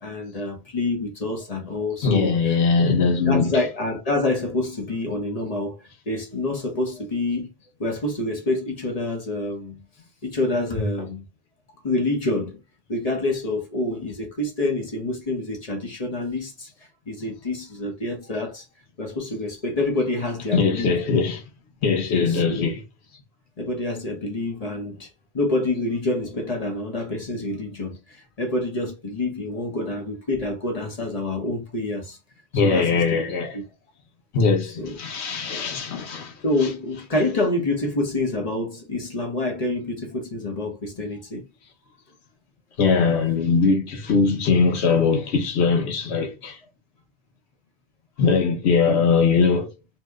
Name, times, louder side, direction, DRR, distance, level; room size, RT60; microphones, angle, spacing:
voice 1, 0.0-2.6 3.3-5.8 6.1-7.5 7.8-9.8 10.2-11.2 11.8-12.6 12.9-16.7 17.1-18.7 19.0-21.0 22.1-22.7 23.6-25.1 25.3-32.2 32.5-33.2 33.5-33.6 34.6-35.0 36.4-41.4, left 2 dB, 40° left, 0.8 m, -27 dB
voice 2, 2.0-3.6 20.5-21.4 21.8-22.8 32.5-33.6 34.3-36.3 42.8-46.6 48.2-49.7, left 5 dB, 85° left, 1.1 m, -21 dB
2.8 x 2.0 x 3.4 m
omnidirectional pair, 1.1 m